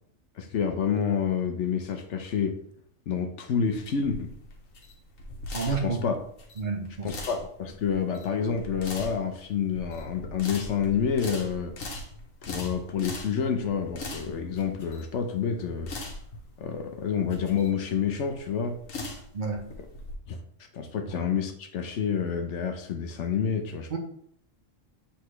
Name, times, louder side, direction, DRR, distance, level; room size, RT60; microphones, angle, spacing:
voice 1, 0.4-2.6 3.1-4.3 5.8-6.2 7.0-11.7 12.4-15.9 16.6-18.8 20.3-20.4 20.7-24.0, left 7 dB, 70° left, 7 dB, 1.0 m, -28 dB
sound 1, 3.6-20.1, left 2 dB, 90° left, 1.5 m, -40 dB
voice 2, 5.5-6.0 6.6-7.1 19.3-19.6 23.9-24.0, right 4 dB, 45° right, 2 dB, 0.8 m, -29 dB
7.8 x 4.1 x 3.2 m, 0.66 s
omnidirectional pair, 1.3 m